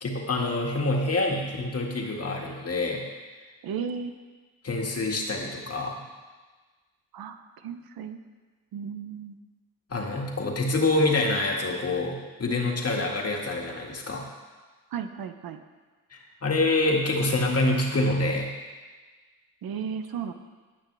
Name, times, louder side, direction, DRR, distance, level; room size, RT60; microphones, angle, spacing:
voice 1, 0.0-3.0 4.6-6.0 9.9-14.3 16.1-18.5, left 2 dB, 40° left, 0 dB, 2.0 m, -26 dB
voice 2, 3.6-4.1 7.1-8.2 8.7-9.4 14.9-15.6 19.6-20.3, right 7 dB, 75° right, 8 dB, 0.8 m, -34 dB
16.5 x 6.1 x 3.4 m, 1.4 s
cardioid pair, 65°, 36 cm